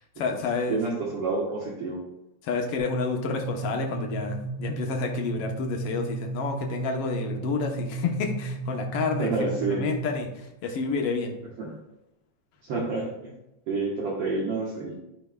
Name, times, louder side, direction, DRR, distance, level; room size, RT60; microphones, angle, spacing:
voice 1, 0.2-0.8 2.4-9.3 9.7-11.3, left 5 dB, 65° left, 2 dB, 1.7 m, -29 dB
voice 2, 0.7-2.0 9.2-9.9 11.6-11.8 12.6-13.3 13.7-15.0, right 3 dB, 60° right, -4 dB, 1.9 m, -29 dB
sound 1, 2.8-10.3, right 3 dB, 85° right, 3.7 m, -34 dB
13.0 x 5.3 x 2.3 m, 0.93 s
omnidirectional pair, 3.3 m